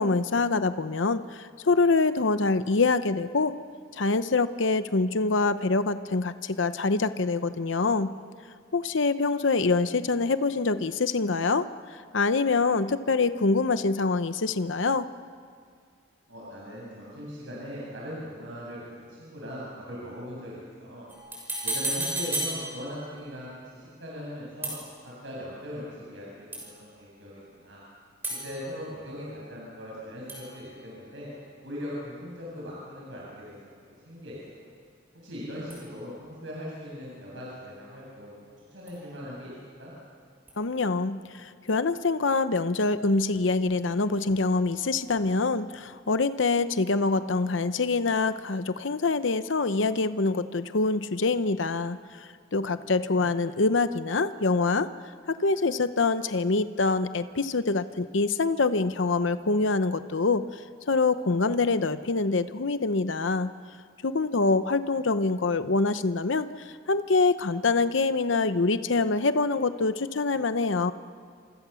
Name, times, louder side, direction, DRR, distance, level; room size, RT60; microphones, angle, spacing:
voice 1, 0.0-3.5 3.9-8.1 8.7-15.1 40.6-54.9 55.3-63.5 64.0-70.9, left 3 dB, 80° left, 11 dB, 0.8 m, -25 dB
voice 2, 16.3-21.1 21.6-24.7 25.0-27.8 28.4-31.3 31.6-33.7 34.0-34.3 35.1-38.4 38.7-39.5 39.8-39.9, equal, 80° right, -5 dB, 7.7 m, -40 dB
sound 1, 21.1-23.2 24.6-25.3 26.5-27.0 28.2-30.0 30.3-31.5 35.7-36.5 38.9-39.5 40.5-40.6, right 1 dB, 10° right, 6.5 m, -36 dB
29.0 x 27.0 x 7.0 m, 2.1 s
head